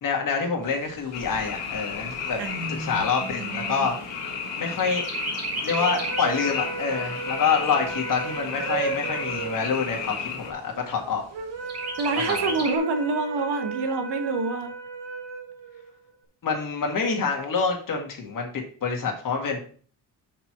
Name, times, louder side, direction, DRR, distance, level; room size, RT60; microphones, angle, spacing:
voice 1, 0.0-2.4 2.7-4.0 4.6-5.0 5.6-11.2 12.2-12.5 16.4-19.6, left 5 dB, 50° left, 2 dB, 2.1 m, -27 dB
Chirp tweet, 0.6-4.4 4.8-6.4 6.9-7.0 7.3-8.3 8.9-9.0 9.4-9.5 9.9-10.4 11.7-12.8, right 3 dB, 35° right, 2.0 m, -34 dB
Frog, 1.1-10.5, left 6 dB, 85° left, 2.1 m, -33 dB
voice 2, 2.4-3.9 12.0-14.7, right 3 dB, 65° right, 7 dB, 1.4 m, -28 dB
sound 1, 5.7-16.1, right 5 dB, 85° right, 2.1 m, -35 dB
5.9 x 4.7 x 5.9 m, 0.43 s
cardioid pair, 140°, 43 cm